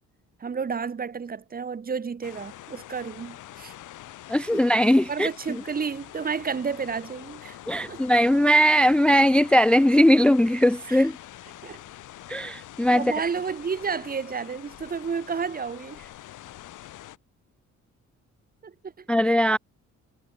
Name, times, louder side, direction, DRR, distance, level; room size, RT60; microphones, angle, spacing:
voice 1, 0.4-3.7 4.5-4.7 5.1-7.6 7.9-8.0 10.9-11.1 11.6-11.8 12.9-16.1 18.6-19.1, right 6 dB, 30° right, 1.0 m, -31 dB
sound 1, 2.2-17.2, left 14 dB, 80° left, 6.4 m, -45 dB
voice 2, 4.3-5.3 7.7-11.2 12.3-13.3 19.1-19.6, equal, 5° left, 0.5 m, -19 dB
cardioid pair, 90°, 30 cm